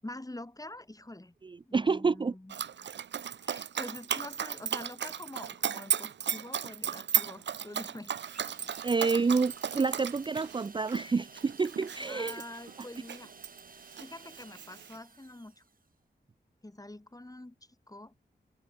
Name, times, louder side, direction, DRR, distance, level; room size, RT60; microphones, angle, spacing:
voice 1, 0.0-1.3 1.7-2.6 3.4-8.1 12.1-13.3 14.0-15.6 16.6-17.6 17.9-18.1, left 1 dB, 20° left, 7.7 m, -45 dB
voice 2, 1.4-2.3 8.8-12.4, right 4 dB, 25° right, 0.4 m, -28 dB
Dog, 2.5-13.6 13.9-15.0, right 8 dB, 85° right, 0.6 m, -35 dB
sound 1, 8.3-15.9, right 4 dB, 50° right, 2.8 m, -54 dB
open air
wide cardioid pair, 70°, 18 cm